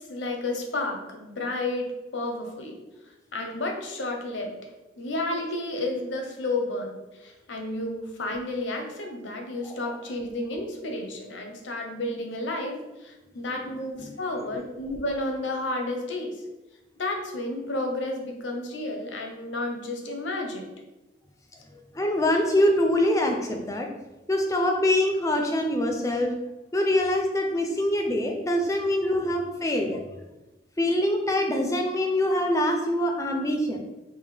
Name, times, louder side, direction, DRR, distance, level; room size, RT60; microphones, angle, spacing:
voice 1, 0.1-2.8 3.3-4.6 5.0-16.4 17.0-20.7 29.0-29.1, left 2 dB, 85° left, 3 dB, 0.7 m, -31 dB
voice 2, 21.7-23.9 24.3-26.4 26.7-30.0 30.8-33.8, left 1 dB, 15° left, 3 dB, 0.4 m, -24 dB
5.2 x 2.1 x 3.3 m, 1.1 s
head